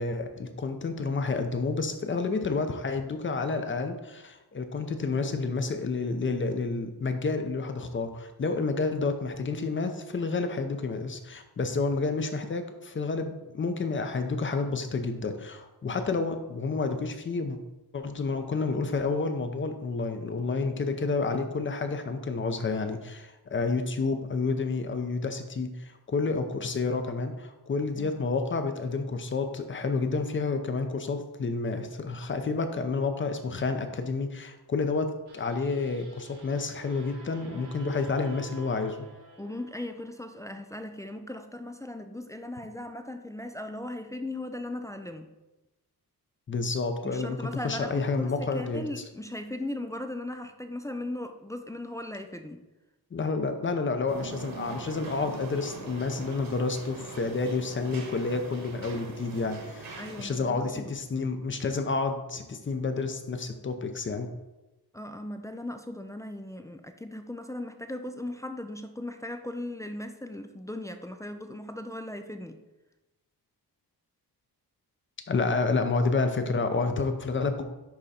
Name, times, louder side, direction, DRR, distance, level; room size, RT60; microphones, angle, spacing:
voice 1, 0.0-17.6 17.9-39.0 46.5-47.4 47.6-48.9 53.1-64.3 75.3-77.6, left 4 dB, 30° left, 7 dB, 0.7 m, -30 dB
sound 1, 35.3-40.5, right 3 dB, 90° right, 2.3 m, -51 dB
voice 2, 39.4-45.3 47.0-52.6 60.0-60.9 64.9-72.6, left 1 dB, 10° left, 6 dB, 0.4 m, -38 dB
sound 2, 54.1-60.2, right 3 dB, 60° right, 1.6 m, -42 dB
10.5 x 3.7 x 4.3 m, 1.1 s
wide cardioid pair, 135°, 39 cm